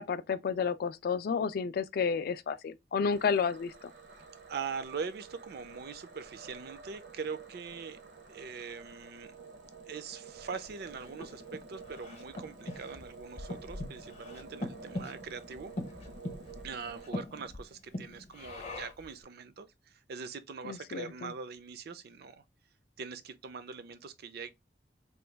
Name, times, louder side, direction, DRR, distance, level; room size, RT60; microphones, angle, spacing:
voice 1, 0.0-3.9 20.6-21.3, left 6 dB, 60° left, 0.3 m, -31 dB
sound 1, 3.1-17.1, right 4 dB, 80° right, 0.8 m, -50 dB
voice 2, 4.5-8.0 8.3-9.4 9.8-15.7 16.6-22.4 23.0-24.5, right 5 dB, 60° right, 0.4 m, -42 dB
Breathing, 10.6-19.1, left 1 dB, 40° left, 0.7 m, -42 dB
3.0 x 2.2 x 3.3 m
head